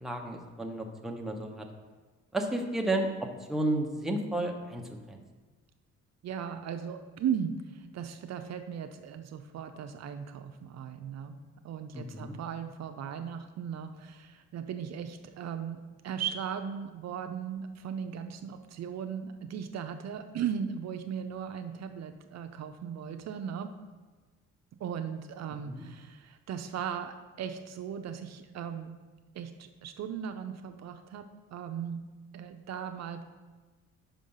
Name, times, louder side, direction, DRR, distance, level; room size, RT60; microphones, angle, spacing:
voice 1, 0.0-1.7 2.3-5.2 11.9-12.3 25.6-25.8, right 1 dB, ahead, 1 dB, 0.8 m, -32 dB
voice 2, 6.2-11.4 11.6-23.7 24.8-29.0 29.3-32.1 32.3-33.2, right 8 dB, 60° right, 7 dB, 0.5 m, -37 dB
5.6 x 5.1 x 5.5 m, 1.3 s
cardioid pair, 90°, 30 cm